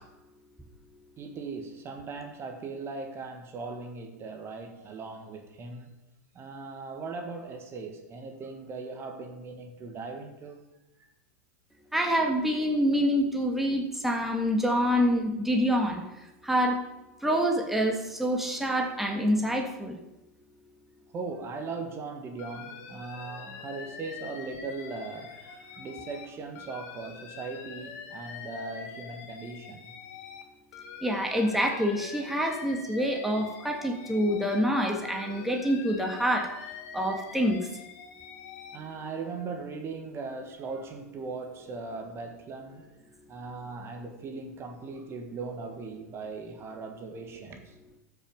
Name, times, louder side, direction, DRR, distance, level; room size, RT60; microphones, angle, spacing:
voice 1, 1.2-5.9 6.3-10.6 11.0-11.1 21.1-29.8 38.7-42.9 43.3-47.7, right 4 dB, 30° right, 1.6 m, -39 dB
voice 2, 11.9-16.0 16.4-16.8 17.2-19.9 31.0-36.5 36.9-37.6, equal, 5° right, 1.6 m, -26 dB
Alarm, 22.4-26.3 26.5-30.4 30.7-34.6 34.9-38.8, left 6 dB, 55° left, 2.0 m, -45 dB
13.0 x 6.2 x 5.4 m
hypercardioid pair, 100°, 9 cm